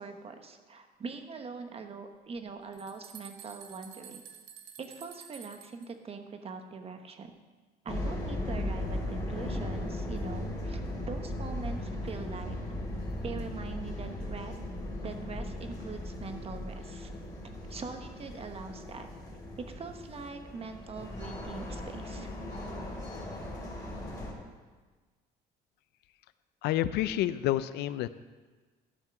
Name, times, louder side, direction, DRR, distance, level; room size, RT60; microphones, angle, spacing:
voice 1, 0.0-4.2 4.8-7.3 7.8-10.8 11.1-12.6 13.2-14.6 15.0-17.1 17.7-19.1 19.7-22.3, right 4 dB, 35° right, 6 dB, 1.1 m, -42 dB
sound 1, 2.3-5.9, right 8 dB, 75° right, 1.2 m, -50 dB
sound 2, 7.9-24.3, left 1 dB, 25° left, 3.0 m, -37 dB
voice 2, 26.6-28.1, left 13 dB, 80° left, 14 dB, 0.4 m, -29 dB
12.5 x 5.6 x 5.9 m, 1.4 s
cardioid pair, 110°, 17 cm